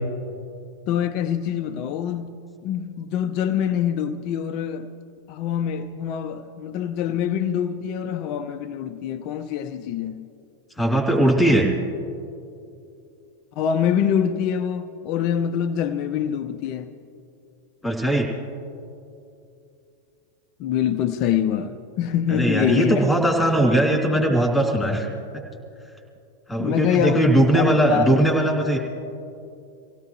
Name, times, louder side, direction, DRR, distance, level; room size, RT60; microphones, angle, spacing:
voice 1, 0.9-4.9 5.3-10.2 13.6-16.9 20.6-23.1 26.6-28.3, left 9 dB, 40° left, 0.6 m, -25 dB
voice 2, 10.8-11.7 17.8-18.3 22.3-25.1 26.5-28.8, right 1 dB, 5° left, 3.2 m, -19 dB
25.5 x 17.0 x 3.2 m
figure-of-eight pair, 90°, 0 cm